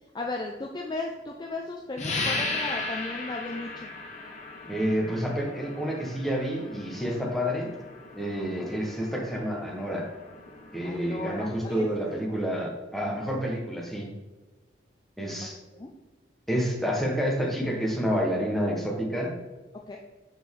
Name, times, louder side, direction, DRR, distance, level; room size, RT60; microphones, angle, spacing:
voice 1, 0.1-3.9 10.8-11.9 15.7-15.9 19.9-20.0, left 2 dB, 20° left, 1 dB, 0.3 m, -35 dB
sound 1, 2.0-12.3, left 3 dB, 35° left, 0.9 m, -37 dB
voice 2, 4.7-7.7 8.2-10.1 10.7-14.1 15.2-15.6 16.5-19.3, equal, ahead, -2 dB, 1.0 m, -29 dB
6.2 x 4.3 x 3.6 m, 1.2 s
head